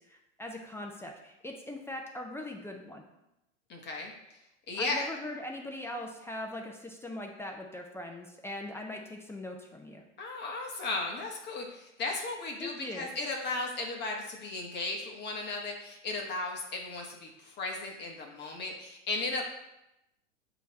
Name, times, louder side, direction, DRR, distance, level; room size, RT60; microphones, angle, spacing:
voice 1, 0.0-3.0 4.8-10.0 12.6-13.1, left 1 dB, 5° left, 2 dB, 0.5 m, -41 dB
voice 2, 3.7-4.4 4.7-5.0 10.2-19.4, left 3 dB, 30° left, 1 dB, 1.0 m, -35 dB
8.1 x 2.9 x 4.1 m, 0.89 s
hypercardioid pair, 105°, 36 cm